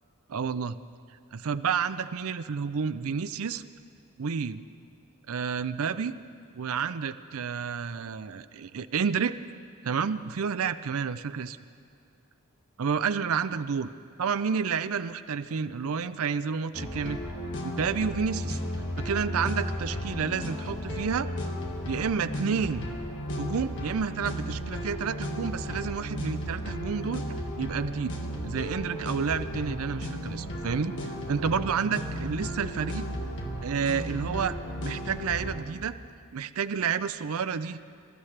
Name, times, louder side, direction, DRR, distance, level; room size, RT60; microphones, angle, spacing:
voice 1, 0.3-0.8 1.3-3.6 4.2-4.6 5.3-6.1 6.5-9.3 9.8-11.6 12.8-13.9 14.2-17.2 17.6-18.6 19.0-21.3 21.9-22.9 23.4-28.1 28.4-30.9 31.3-33.1 33.6-34.6 34.8-36.0 36.3-37.8, right 6 dB, 70° right, 12 dB, 0.5 m, -30 dB
sound 1, 16.7-35.6, equal, 55° left, 1.7 m, -34 dB
26.0 x 13.5 x 3.3 m, 2.4 s
head